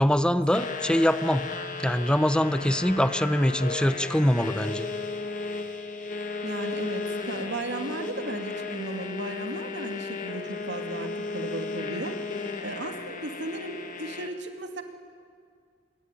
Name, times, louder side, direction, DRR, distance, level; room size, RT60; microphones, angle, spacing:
voice 1, 0.0-1.5 1.8-4.9, equal, 5° left, 12 dB, 0.7 m, -23 dB
sound 1, 0.5-14.3, left 4 dB, 45° left, 2.2 m, -35 dB
voice 2, 6.4-12.2 12.6-14.8, right 2 dB, 70° right, 4 dB, 2.6 m, -35 dB
27.0 x 21.5 x 9.9 m, 2.1 s
head